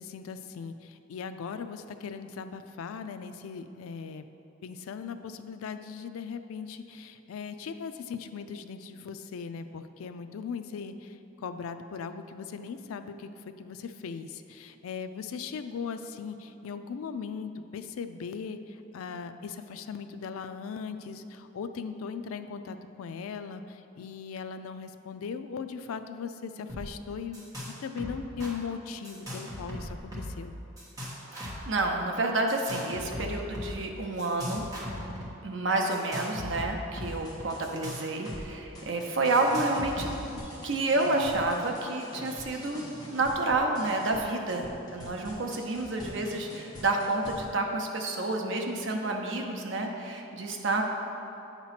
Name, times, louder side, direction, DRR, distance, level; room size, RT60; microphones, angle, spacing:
voice 1, 0.0-4.3 4.6-27.5 27.8-30.6, left 6 dB, 80° left, 9 dB, 0.3 m, -39 dB
sound 1, 26.7-26.9 27.1-27.7 28.0-28.5 29.0-30.4 30.8-31.7 32.5-33.7 34.2-35.3 35.9-38.4 38.7-38.8 39.3-40.4, left 1 dB, 15° right, 1.2 m, -38 dB
voice 2, 31.3-34.6 35.4-50.8, right 2 dB, 60° right, 2 dB, 0.7 m, -29 dB
sound 2, 37.0-47.5, left 1 dB, 20° left, 0.9 m, -46 dB
8.5 x 3.0 x 5.7 m, 3.0 s
head